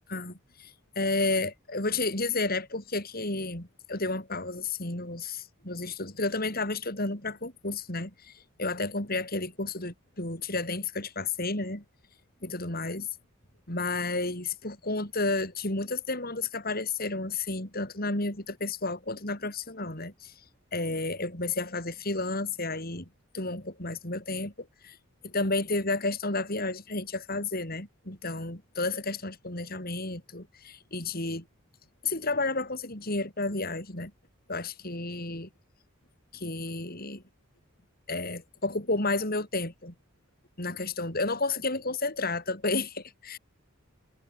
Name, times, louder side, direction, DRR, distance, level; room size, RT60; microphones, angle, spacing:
voice 1, 0.1-8.3 8.6-11.8 12.4-13.1 13.7-20.3 20.7-23.1 23.3-25.0 25.2-31.4 32.0-34.1 34.5-35.5 36.3-37.2 38.1-39.9 40.6-43.4, left 3 dB, 45° left, 6.5 m, -31 dB
head